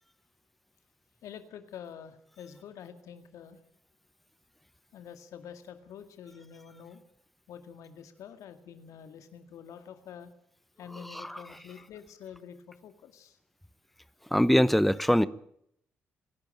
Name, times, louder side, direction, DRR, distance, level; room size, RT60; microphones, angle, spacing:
voice 1, 1.2-3.6 4.9-7.0 7.5-10.3 10.8-13.4, left 8 dB, 70° left, 2.0 m, -47 dB
voice 2, 11.1-11.4 14.3-15.3, equal, ahead, 0.9 m, -23 dB
26.0 x 12.0 x 8.9 m
hypercardioid pair, 45°, 6 cm